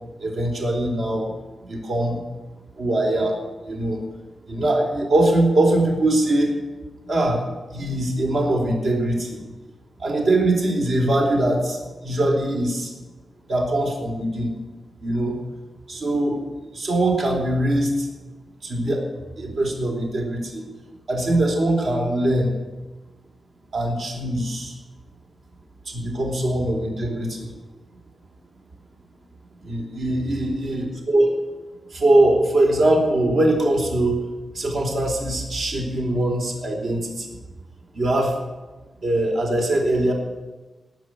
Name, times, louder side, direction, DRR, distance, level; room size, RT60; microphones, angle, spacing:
voice 1, 0.2-1.3 1.6-2.2 2.8-3.4 3.6-4.0 4.5-6.5 7.0-7.4 7.7-9.4 10.0-11.8 12.0-12.9 13.5-14.5 15.0-15.4 15.9-16.4 16.7-18.1 18.6-19.0 19.4-20.6 21.1-22.5 23.7-24.7 25.9-27.5 29.7-31.3 31.9-34.2 34.5-37.3 37.9-38.3 39.0-40.1, right 1 dB, 70° right, 0 dB, 3.9 m, -22 dB
18.5 x 6.3 x 9.6 m, 1.2 s
wide cardioid pair, 125°, 0 cm